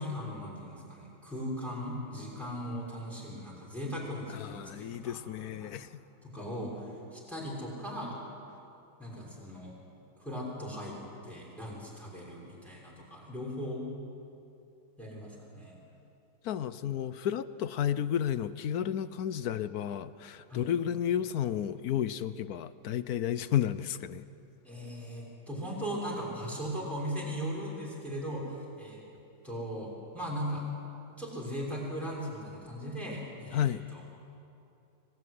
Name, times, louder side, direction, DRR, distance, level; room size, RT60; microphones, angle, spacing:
voice 1, 0.0-5.8 6.2-8.2 9.0-9.8 10.2-11.0 11.2-13.8 15.0-15.8 20.5-20.7 24.6-29.0 29.4-30.6 31.2-34.0, equal, ahead, -5 dB, 6.0 m, -38 dB
voice 2, 4.3-5.9 16.4-24.2 33.5-33.8, left 10 dB, 65° left, 15 dB, 1.0 m, -32 dB
25.5 x 18.0 x 9.6 m, 2.7 s
omnidirectional pair, 2.1 m